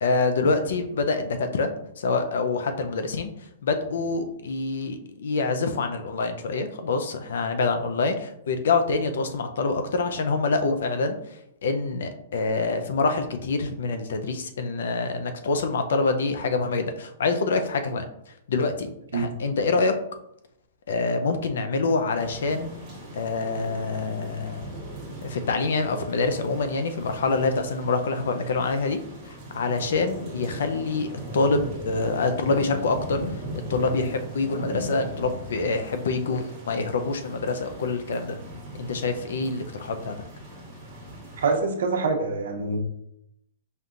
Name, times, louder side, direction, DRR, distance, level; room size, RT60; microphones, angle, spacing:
voice 1, 0.0-3.3 3.6-11.2 11.6-18.1 18.5-19.9 20.9-22.7 23.1-24.7 25.2-29.0 29.5-33.2 33.7-38.4 38.8-40.1, left 3 dB, 75° left, 7 dB, 0.5 m, -26 dB
sound 1, 22.1-41.6, equal, 15° right, 1.4 m, -39 dB
voice 2, 41.4-42.8, right 3 dB, 80° right, 3 dB, 0.8 m, -25 dB
5.2 x 2.8 x 2.5 m, 0.77 s
hypercardioid pair, 175°, 0 cm